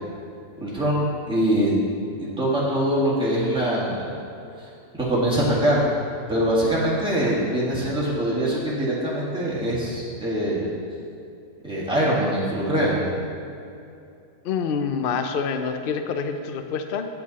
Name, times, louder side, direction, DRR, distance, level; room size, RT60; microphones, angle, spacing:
voice 1, 0.6-1.8 2.2-4.2 5.0-5.9 6.3-10.7 11.6-13.0, right 1 dB, 5° right, -7 dB, 1.9 m, -23 dB
voice 2, 14.4-17.1, left 6 dB, 60° left, 7 dB, 0.6 m, -26 dB
8.4 x 8.0 x 4.1 m, 2.6 s
omnidirectional pair, 1.5 m